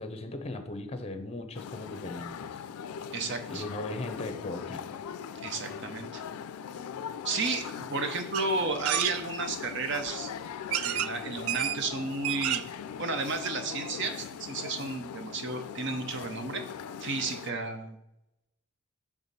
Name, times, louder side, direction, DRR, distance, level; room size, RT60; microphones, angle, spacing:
voice 1, 0.0-2.6 3.5-4.8, left 2 dB, 25° left, 7 dB, 0.6 m, -38 dB
sound 1, 1.5-17.5, left 7 dB, 85° left, 0.3 m, -40 dB
voice 2, 3.1-3.6 5.4-6.2 7.2-10.3 10.8-12.6 13.0-16.6 17.0-18.0, right 3 dB, 55° right, 6 dB, 0.7 m, -33 dB
sound 2, 8.3-8.5 8.8-9.1 10.1-10.2 10.7-11.1 11.5-11.8 12.1-12.8 13.1-13.2 13.4-13.5, right 12 dB, 75° right, 0.3 m, -29 dB
6.9 x 3.6 x 4.1 m, 0.87 s
head